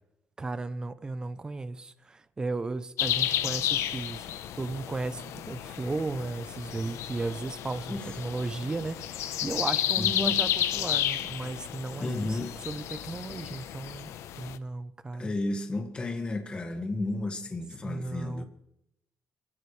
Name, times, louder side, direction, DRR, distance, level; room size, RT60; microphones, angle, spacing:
voice 1, 0.4-4.2 4.6-15.3 17.8-18.4, right 3 dB, 15° right, 0.7 m, -35 dB
sound 1, 3.0-14.6, left 12 dB, 80° left, 0.9 m, -32 dB
sound 2, 4.1-13.8, left 4 dB, 60° left, 5.9 m, -53 dB
voice 2, 10.0-10.4 12.0-12.6 15.1-18.4, left 2 dB, 20° left, 1.9 m, -32 dB
25.0 x 16.5 x 3.3 m
cardioid pair, 170°, 5 cm